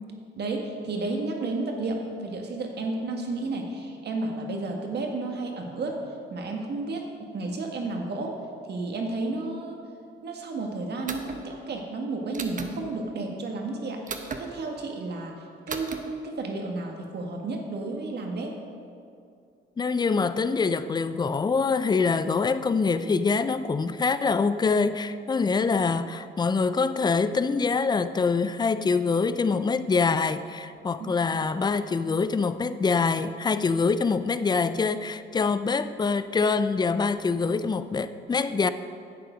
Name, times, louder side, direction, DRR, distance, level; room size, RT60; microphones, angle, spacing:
voice 1, 0.4-6.0 6.3-8.3 8.7-9.8 10.2-15.3 15.7-18.6 31.0-31.2, right 2 dB, 55° right, 1.7 m, -32 dB
sound 1, 11.1-11.4 12.3-12.7 14.1-14.4 15.7-16.0, right 5 dB, 40° right, 0.9 m, -34 dB
voice 2, 19.8-38.7, left 4 dB, 20° left, 0.4 m, -25 dB
10.5 x 7.8 x 5.0 m
cardioid pair, 90°, 20 cm